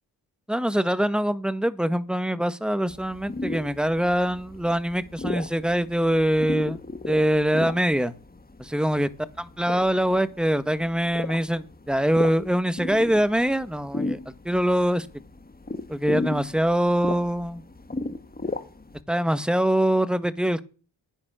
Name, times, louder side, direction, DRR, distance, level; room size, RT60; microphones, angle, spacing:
voice 1, 0.5-6.8 7.1-8.1 8.6-9.1 9.4-15.1 15.9-17.6 19.1-20.6, equal, ahead, 1.5 m, -24 dB
sound 1, 2.9-19.0, left 2 dB, 20° left, 1.6 m, -36 dB
10.0 x 9.5 x 6.2 m
supercardioid pair, 40°, 45 cm